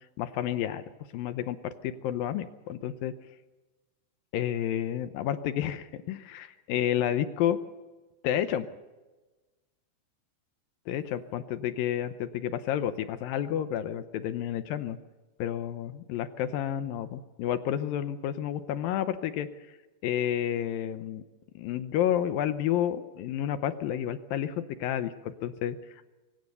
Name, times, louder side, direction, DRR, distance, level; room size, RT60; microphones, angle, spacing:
voice 1, 0.2-0.8 1.1-3.1 4.3-7.6 8.2-8.7 10.9-15.0 15.4-19.8 20.0-21.2 21.6-26.1, left 10 dB, 80° left, 11 dB, 2.1 m, -30 dB
23.5 x 18.5 x 6.8 m, 1.2 s
omnidirectional pair, 5.1 m